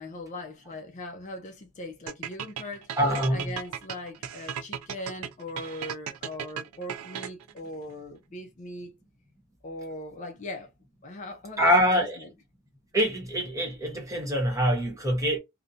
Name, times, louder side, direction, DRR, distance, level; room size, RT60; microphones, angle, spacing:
voice 1, 0.0-3.0 3.3-9.0 9.6-10.7 11.0-12.3, left 1 dB, 35° left, 0.5 m, -40 dB
sound 1, 2.1-7.6, right 9 dB, 80° right, 0.3 m, -36 dB
voice 2, 3.0-3.5 11.6-12.2 12.9-15.4, equal, 15° right, 0.9 m, -24 dB
2.5 x 2.1 x 2.6 m
head